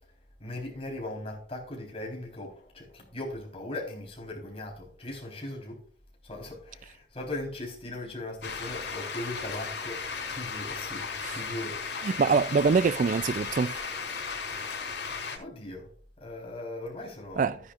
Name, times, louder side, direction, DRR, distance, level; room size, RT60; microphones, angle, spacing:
voice 1, 0.4-5.8 6.2-10.0 10.3-11.1 11.3-12.1 14.5-14.8 15.4-15.9 16.2-17.6, left 1 dB, 35° left, 4.0 m, -39 dB
sound 1, 8.4-15.4, left 5 dB, 80° left, 4.1 m, -35 dB
voice 2, 12.0-13.9 17.4-17.6, right 5 dB, 45° right, 0.3 m, -24 dB
14.5 x 10.0 x 2.5 m
head